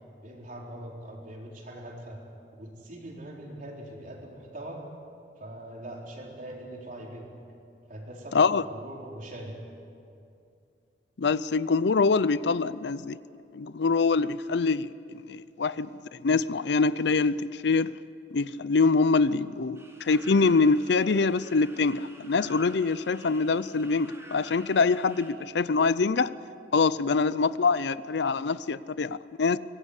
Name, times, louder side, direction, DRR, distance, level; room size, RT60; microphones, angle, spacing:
voice 1, 0.2-2.2 2.5-4.8 5.4-7.4 7.9-9.6, right 1 dB, 50° right, 4.5 m, -42 dB
voice 2, 11.2-13.2 13.5-17.9 18.3-26.3 26.7-29.6, left 4 dB, 70° left, 0.5 m, -24 dB
sound 1, 19.7-25.3, right 1 dB, 15° right, 3.3 m, -49 dB
24.5 x 19.0 x 8.3 m
head